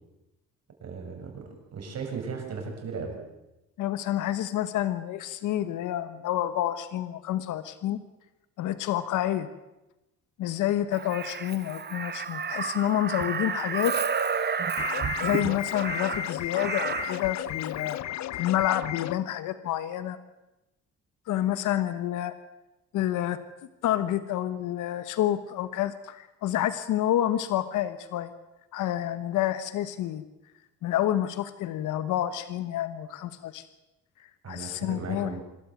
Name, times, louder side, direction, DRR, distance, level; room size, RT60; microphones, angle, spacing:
voice 1, 0.8-3.2 34.4-35.4, right 5 dB, 60° right, 3 dB, 7.2 m, -36 dB
voice 2, 3.8-8.0 8.6-9.5 10.4-14.0 15.2-18.0 18.3-20.2 21.3-22.3 22.9-23.4 23.8-28.3 28.7-30.2 30.8-33.7 34.5-35.3, left 12 dB, 90° left, 13 dB, 1.3 m, -28 dB
Crow, 10.9-17.3 18.7-18.9, right 6 dB, 35° right, 1.1 m, -31 dB
sound 1, 14.8-19.2, left 13 dB, 65° left, 0.7 m, -34 dB
26.0 x 13.5 x 9.3 m, 0.95 s
cardioid pair, 90°, 30 cm